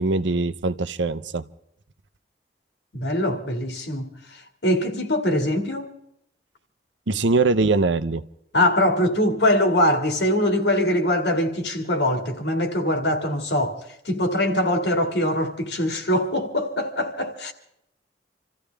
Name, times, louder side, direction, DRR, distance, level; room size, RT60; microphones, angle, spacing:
voice 1, 0.0-1.4 7.1-8.2, right 3 dB, 80° right, 0.8 m, -22 dB
voice 2, 2.9-4.1 4.6-5.9 8.5-13.8 14.1-17.5, left 1 dB, 65° left, 2.2 m, -22 dB
27.5 x 14.5 x 3.4 m
head